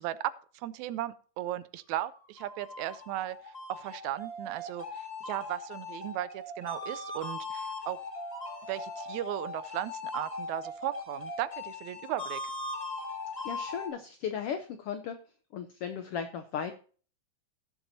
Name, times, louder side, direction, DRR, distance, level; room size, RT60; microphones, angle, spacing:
voice 1, 0.0-8.0 8.7-12.4, right 13 dB, 80° right, 16 dB, 1.9 m, -36 dB
sound 1, 2.1-13.9, left 2 dB, 40° left, 0.5 m, -40 dB
voice 2, 13.4-15.2 15.5-16.8, left 7 dB, 80° left, 8 dB, 1.3 m, -36 dB
17.5 x 7.1 x 2.7 m, 0.40 s
omnidirectional pair, 3.5 m